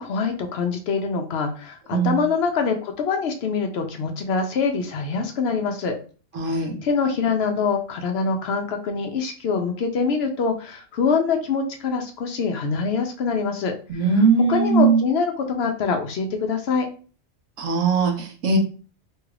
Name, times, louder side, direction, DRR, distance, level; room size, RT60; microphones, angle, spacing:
voice 1, 0.0-6.0 6.5-13.7 14.5-16.9, left 5 dB, 65° left, 4 dB, 0.7 m, -24 dB
voice 2, 1.9-2.2 6.3-6.8 13.9-15.0 17.6-18.6, right 4 dB, 85° right, 2 dB, 1.1 m, -20 dB
3.0 x 2.4 x 3.1 m, 0.38 s
omnidirectional pair, 1.2 m